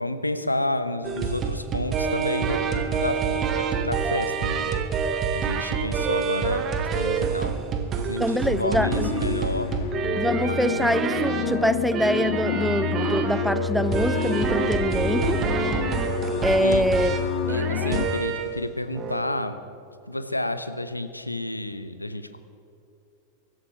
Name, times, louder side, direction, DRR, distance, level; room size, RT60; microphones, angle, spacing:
voice 1, 0.0-4.7 5.3-9.7 10.4-10.6 16.6-16.9 17.5-19.7 20.1-22.4, left 1 dB, 85° left, 10 dB, 0.9 m, -30 dB
sound 1, 1.0-18.6 19.0-19.2, right 6 dB, 25° right, 1.4 m, -27 dB
voice 2, 8.2-9.1 10.2-15.4 16.4-17.2, equal, ahead, 14 dB, 0.5 m, -24 dB
sound 2, 8.7-18.0, left 8 dB, 50° left, 1.0 m, -28 dB
23.5 x 13.0 x 3.5 m, 2.8 s
figure-of-eight pair, 90°, 0 cm